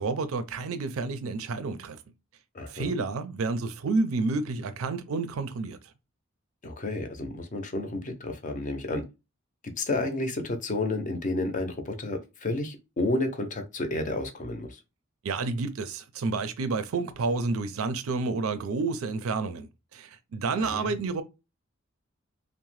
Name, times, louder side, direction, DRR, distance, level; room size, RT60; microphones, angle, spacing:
voice 1, 0.0-2.0 2.7-5.8 15.2-21.2, right 3 dB, 75° right, 0.4 m, -30 dB
voice 2, 2.5-2.9 6.6-9.0 9.8-14.8 20.6-20.9, left 2 dB, 40° left, 0.5 m, -31 dB
2.7 x 2.1 x 3.1 m
head